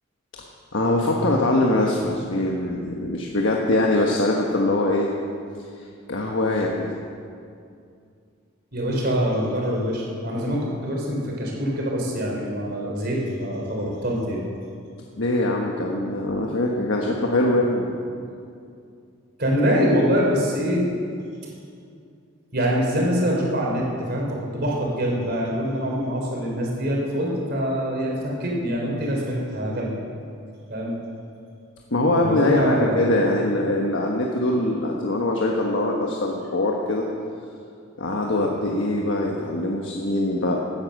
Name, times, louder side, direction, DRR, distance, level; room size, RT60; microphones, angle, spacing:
voice 1, 0.7-5.1 6.1-6.9 15.2-18.0 31.9-37.1 38.0-40.6, left 1 dB, 65° left, -1 dB, 1.3 m, -22 dB
voice 2, 8.7-14.4 19.4-20.9 22.5-29.9 30.7-30.9 32.2-33.4, equal, 50° right, -2 dB, 3.8 m, -24 dB
17.0 x 9.9 x 6.5 m, 2.4 s
head